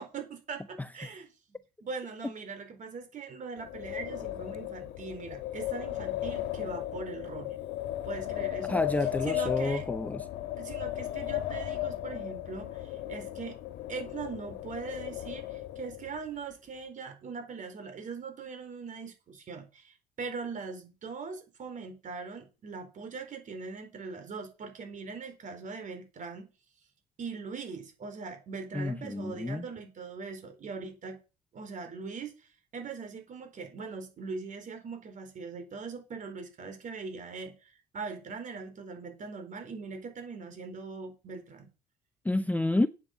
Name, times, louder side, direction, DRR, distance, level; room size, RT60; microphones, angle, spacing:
voice 1, 0.0-7.6 8.0-8.8 9.2-9.9 10.6-13.6 13.9-26.5 27.2-31.2 31.5-41.7, right 4 dB, 50° right, 4.1 m, -41 dB
Wind, 3.6-16.2, left 13 dB, 85° left, 1.4 m, -36 dB
voice 2, 8.7-10.2 28.7-29.6 42.2-42.9, left 2 dB, 10° left, 0.6 m, -29 dB
8.9 x 8.4 x 7.0 m
cardioid pair, 110°, 17 cm